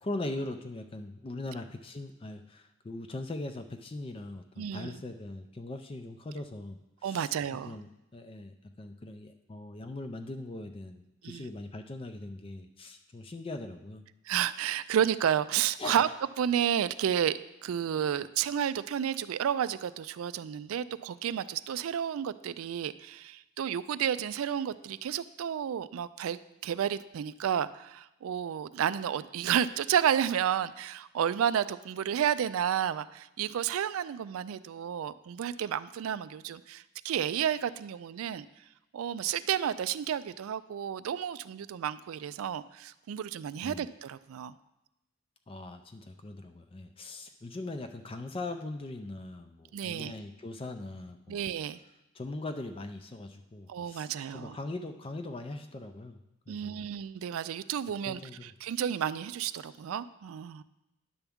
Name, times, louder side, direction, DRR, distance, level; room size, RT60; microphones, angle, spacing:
voice 1, 0.0-7.3 7.6-14.1 15.8-16.1 43.6-43.9 45.5-51.5 52.1-56.2 56.5-56.8 58.0-58.5, left 2 dB, 25° left, 6 dB, 0.4 m, -40 dB
voice 2, 4.6-5.0 7.0-7.8 11.2-11.5 14.3-16.1 16.4-38.5 38.9-44.5 49.7-50.1 51.3-51.8 53.7-54.6 56.5-60.6, right 9 dB, 75° right, 16 dB, 0.3 m, -31 dB
10.0 x 7.0 x 3.5 m, 0.92 s
head